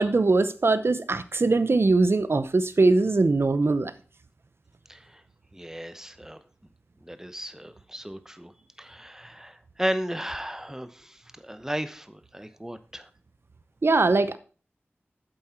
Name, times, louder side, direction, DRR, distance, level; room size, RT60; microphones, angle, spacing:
voice 1, 0.0-3.9 13.8-14.4, right 3 dB, 65° right, 13 dB, 0.8 m, -21 dB
voice 2, 4.9-5.2 5.5-6.4 7.0-8.5 8.8-13.1, equal, 10° right, 12 dB, 0.8 m, -35 dB
8.0 x 7.8 x 4.4 m, 0.38 s
wide cardioid pair, 45°, 5 cm